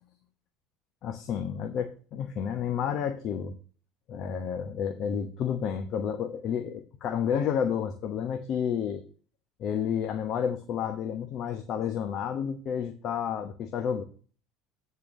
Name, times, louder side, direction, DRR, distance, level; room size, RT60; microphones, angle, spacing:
voice 1, 1.0-3.5 4.1-9.0 9.6-14.0, left 8 dB, 55° left, 7 dB, 1.0 m, -30 dB
8.7 x 4.5 x 6.3 m, 0.41 s
supercardioid pair, 90°, 0 cm